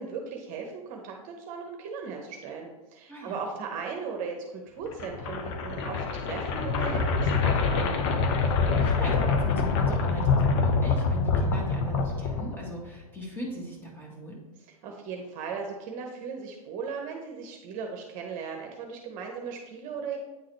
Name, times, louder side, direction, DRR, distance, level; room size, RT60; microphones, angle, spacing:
voice 1, 0.0-7.9 14.8-20.2, right 5 dB, 40° right, 2 dB, 1.0 m, -37 dB
voice 2, 3.1-3.4 8.5-14.4, equal, 10° left, -3 dB, 2.0 m, -39 dB
sound 1, 4.9-12.9, left 4 dB, 50° left, 0.9 m, -25 dB
9.1 x 3.8 x 3.3 m, 1.1 s
hypercardioid pair, 110°, 20 cm